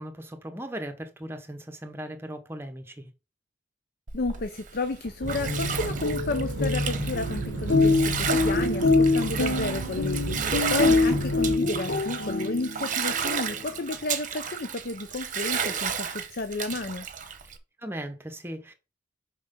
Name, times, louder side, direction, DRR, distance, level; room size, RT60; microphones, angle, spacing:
voice 1, 0.0-3.1 17.8-18.7, right 1 dB, 15° right, 1.1 m, -38 dB
voice 2, 4.1-17.1, left 3 dB, 55° left, 0.7 m, -32 dB
Bathtub (filling or washing), 4.1-17.6, right 7 dB, 45° right, 1.0 m, -33 dB
sound 1, 5.2-11.6, right 3 dB, 75° right, 0.6 m, -34 dB
sound 2, 5.3-13.0, left 3 dB, 80° left, 1.3 m, -25 dB
6.2 x 5.4 x 5.3 m
head